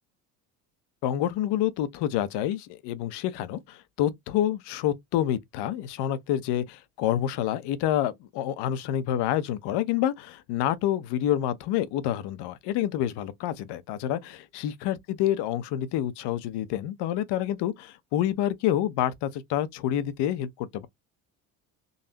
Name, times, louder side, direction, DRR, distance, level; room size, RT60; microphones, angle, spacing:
voice 1, 1.0-20.9, left 11 dB, 60° left, 0.9 m, -28 dB
4.0 x 3.1 x 2.9 m
hypercardioid pair, 75°, 46 cm